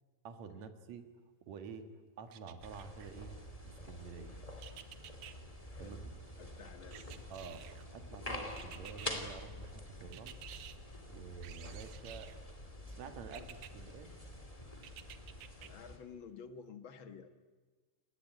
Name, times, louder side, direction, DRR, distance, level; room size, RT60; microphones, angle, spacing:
voice 1, 0.2-1.1 1.5-1.9 2.2-3.4 3.6-4.4 5.8-6.1 7.3-10.4 11.1-12.3 12.9-14.1, right 5 dB, 65° right, 8 dB, 3.0 m, -49 dB
sound 1, 2.3-3.1 4.6-5.3 6.9-7.9 8.6-9.1 10.1-10.8 11.4-12.4 13.3-13.7 14.8-15.7 16.2-16.3, right 11 dB, 80° right, 2.5 m, -52 dB
sound 2, 2.6-16.0, left 1 dB, 10° left, 2.5 m, -47 dB
voice 2, 5.7-6.1 6.4-7.2 15.6-17.3, left 6 dB, 50° left, 9 dB, 2.0 m, -51 dB
29.5 x 20.0 x 9.4 m, 1.3 s
omnidirectional pair, 3.4 m